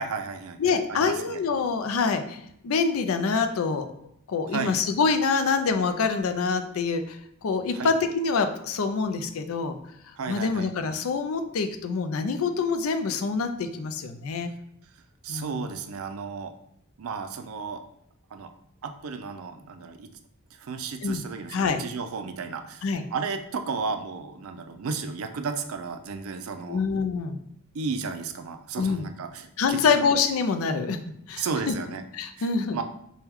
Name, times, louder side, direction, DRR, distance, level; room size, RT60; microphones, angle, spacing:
voice 1, 0.0-1.4 4.5-4.8 7.7-7.9 10.2-10.7 15.2-16.5 17.0-17.8 18.3-18.5 18.8-20.1 20.6-26.8 27.7-29.8 31.4-32.0 32.4-32.8, right 5 dB, 85° right, 7 dB, 0.4 m, -33 dB
voice 2, 0.6-3.9 4.3-9.8 10.3-14.5 15.3-15.7 21.0-21.2 21.5-21.8 22.8-23.0 26.7-27.4 28.8-29.1 29.6-31.0 31.3-31.7 32.1-32.8, left 5 dB, 85° left, 8 dB, 0.4 m, -26 dB
4.4 x 2.2 x 3.5 m, 0.75 s
head